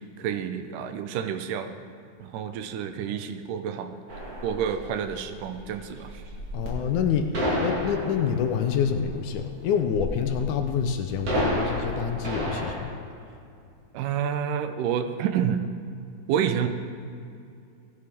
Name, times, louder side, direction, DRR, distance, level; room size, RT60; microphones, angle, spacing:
voice 1, 0.2-1.7 2.2-4.0 4.4-6.2 13.9-15.6 16.3-16.7, right 8 dB, 75° right, 8 dB, 2.2 m, -29 dB
sound 1, 4.1-12.8, equal, 50° right, 2.8 m, -32 dB
voice 2, 6.5-7.3 7.6-12.9, left 7 dB, 75° left, 6 dB, 1.8 m, -27 dB
17.5 x 10.0 x 3.5 m, 2.5 s
omnidirectional pair, 4.0 m